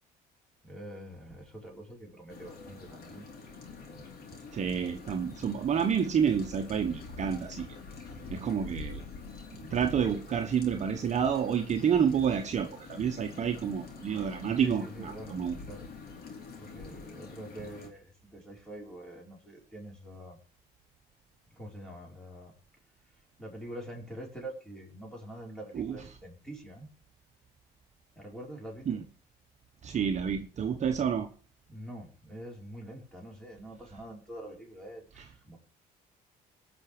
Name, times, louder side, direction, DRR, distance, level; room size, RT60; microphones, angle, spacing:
voice 1, 0.6-3.3 3.9-4.1 14.6-15.9 16.6-20.4 21.5-22.5 23.4-26.9 28.2-29.0 31.7-35.6, right 1 dB, 5° left, 0 dB, 5.3 m, -45 dB
sound 1, 2.3-17.9, left 4 dB, 60° left, 4.3 m, -46 dB
voice 2, 4.5-7.7 8.3-9.0 9.6-15.6 25.7-26.0 28.9-29.0 29.8-31.3 35.2-35.3, right 7 dB, 45° right, 5 dB, 1.3 m, -29 dB
17.5 x 6.3 x 6.8 m, 0.41 s
cardioid pair, 110°, 17 cm